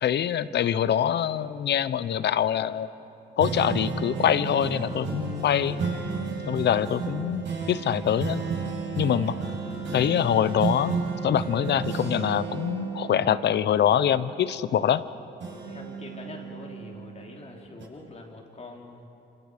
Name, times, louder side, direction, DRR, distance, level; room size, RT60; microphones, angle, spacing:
voice 1, 0.0-2.9 3.4-5.8 6.5-8.4 9.0-9.3 9.9-11.0 11.2-15.0, left 9 dB, 60° left, 15 dB, 0.8 m, -24 dB
sound 1, 3.4-15.0 15.4-17.3 17.8-17.9, right 4 dB, 65° right, 7.5 m, -33 dB
voice 2, 15.4-19.1, left 2 dB, 35° left, 0 dB, 3.9 m, -44 dB
29.0 x 26.5 x 5.1 m, 2.8 s
cardioid pair, 90°, 20 cm